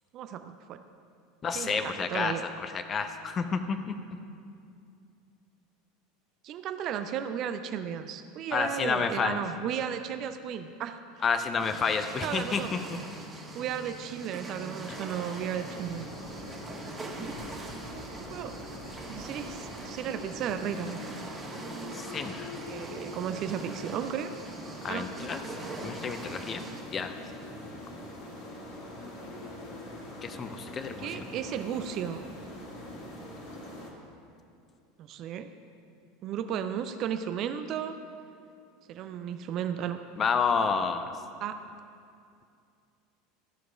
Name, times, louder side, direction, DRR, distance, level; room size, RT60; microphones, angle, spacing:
voice 1, 0.1-0.8 1.5-2.4 6.4-11.0 12.2-12.7 13.5-16.1 18.3-18.5 19.1-21.0 22.7-24.3 24.9-25.1 31.0-32.2 35.0-35.5 36.2-38.0 38.9-40.0 41.4-41.6, right 9 dB, 45° right, 9 dB, 0.4 m, -34 dB
voice 2, 1.4-3.9 8.5-9.4 11.2-12.8 14.9-15.0 21.9-22.5 24.8-25.4 25.8-26.6 26.9-27.2 30.2-31.2 40.2-41.0, left 5 dB, 30° left, 9 dB, 0.6 m, -30 dB
sound 1, 11.6-26.8, right 2 dB, 20° right, 1.4 m, -43 dB
sound 2, 14.9-33.9, left 1 dB, 55° left, 1.8 m, -43 dB
14.0 x 4.7 x 5.0 m, 2.4 s
figure-of-eight pair, 75°, 0 cm